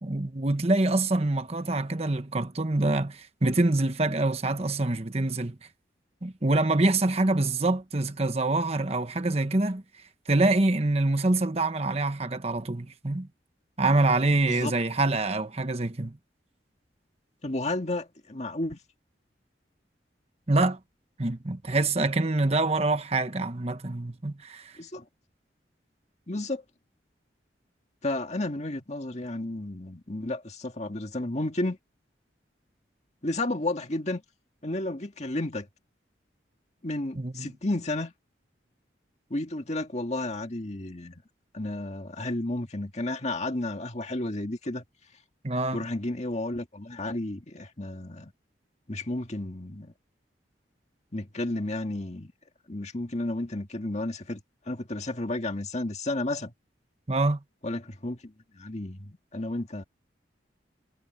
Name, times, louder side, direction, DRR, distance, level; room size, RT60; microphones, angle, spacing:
voice 1, 0.0-5.6 6.2-9.8 10.3-13.3 13.8-16.2 20.5-20.8 21.2-24.7 37.1-37.5 45.4-45.8 57.1-57.4, right 2 dB, 35° right, 1.2 m, -25 dB
voice 2, 14.4-14.8 17.4-18.8 24.8-25.0 26.3-26.6 28.0-31.8 33.2-34.2 34.6-35.7 36.8-38.1 39.3-41.2 41.5-44.8 45.7-48.3 48.9-49.9 51.1-52.3 52.7-54.4 54.7-56.5 57.6-59.8, left 2 dB, 40° left, 2.0 m, -32 dB
head